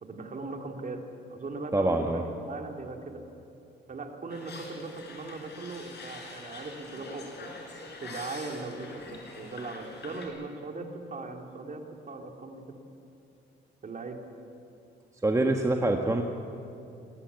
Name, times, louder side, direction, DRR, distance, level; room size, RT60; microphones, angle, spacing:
voice 1, 0.0-3.2 3.9-7.5 8.0-12.8 13.8-14.2, right 3 dB, 40° right, 3 dB, 3.0 m, -39 dB
voice 2, 1.7-2.2 15.2-16.2, right 2 dB, 15° right, 3 dB, 1.5 m, -25 dB
sound 1, 4.3-10.3, left 3 dB, 60° left, 5.4 m, -45 dB
21.0 x 18.0 x 8.3 m, 2.7 s
cardioid pair, 90°, 20 cm